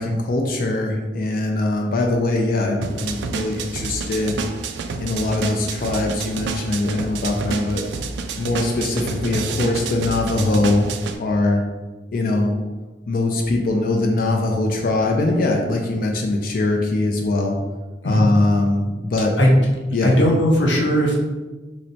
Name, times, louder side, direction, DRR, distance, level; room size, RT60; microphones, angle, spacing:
voice 1, 0.0-4.3 5.0-7.8 8.4-10.9 11.2-11.6 12.1-12.6 13.1-17.6 18.0-19.4 19.9-20.1, left 2 dB, 55° left, 1 dB, 0.4 m, -21 dB
sound 1, 2.8-11.2, right 4 dB, 75° right, 0.3 m, -29 dB
voice 2, 20.0-21.2, equal, 85° left, -2 dB, 0.8 m, -17 dB
3.1 x 3.0 x 2.8 m, 1.2 s
head